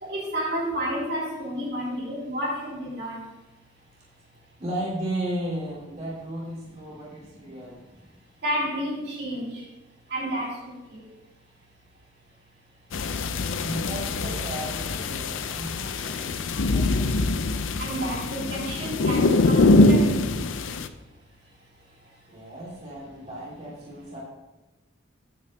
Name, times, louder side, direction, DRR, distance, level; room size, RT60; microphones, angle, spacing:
voice 1, 0.0-3.2 8.4-9.6 10.1-11.0 17.8-20.1, equal, 55° right, -5 dB, 3.0 m, -30 dB
voice 2, 4.6-7.8 13.6-17.1 22.3-24.2, right 1 dB, 35° right, -5 dB, 2.7 m, -35 dB
sound 1, 12.9-20.9, left 2 dB, 85° left, 0.6 m, -23 dB
9.0 x 5.3 x 7.5 m, 1.1 s
head